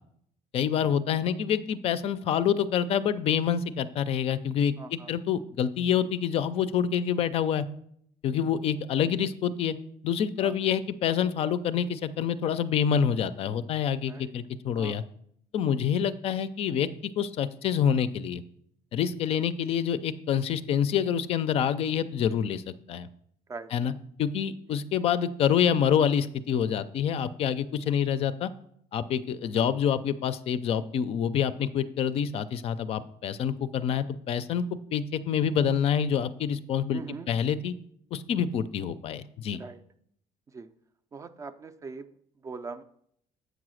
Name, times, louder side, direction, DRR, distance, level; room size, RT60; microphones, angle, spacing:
voice 1, 0.5-7.6 8.2-9.8 10.0-15.0 15.5-16.9 17.2-18.4 18.9-22.6 22.9-23.1 23.7-23.9 24.2-28.5 28.9-34.6 34.9-37.0 37.3-37.7 38.1-39.6, left 8 dB, 45° left, 14 dB, 0.4 m, -27 dB
voice 2, 4.8-5.1 10.4-10.5 14.1-14.3 14.7-15.0 23.5-23.7 36.9-37.3 39.6-39.8 40.5-40.7 41.1-42.1 42.4-42.8, right 4 dB, 20° right, 11 dB, 0.4 m, -41 dB
8.1 x 4.9 x 6.3 m, 0.68 s
cardioid pair, 165°, 14 cm